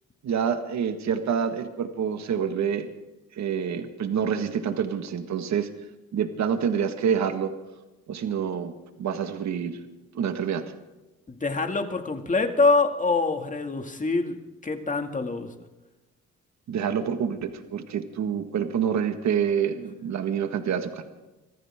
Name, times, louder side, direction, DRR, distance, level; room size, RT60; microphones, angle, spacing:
voice 1, 0.2-2.9 3.3-5.7 6.1-7.5 8.1-9.8 10.1-10.7 16.7-21.0, right 7 dB, 65° right, 7 dB, 1.7 m, -27 dB
voice 2, 11.3-15.5, left 3 dB, 25° left, 5 dB, 2.3 m, -25 dB
25.0 x 15.5 x 3.7 m, 1.1 s
cardioid pair, 90°, 30 cm